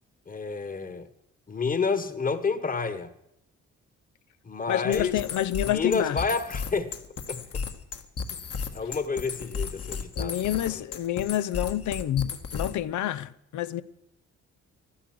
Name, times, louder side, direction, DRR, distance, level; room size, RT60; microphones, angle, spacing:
voice 1, 0.3-1.1 1.5-3.1 4.4-5.2 5.7-6.9 7.3-7.6 8.7-10.7, left 4 dB, 30° left, 1.6 m, -29 dB
voice 2, 4.7-6.2 10.2-13.8, left 12 dB, 75° left, 0.8 m, -28 dB
sound 1, 4.9-12.9, left 5 dB, 50° left, 1.9 m, -34 dB
14.5 x 12.0 x 7.7 m
cardioid pair, 90°, 30 cm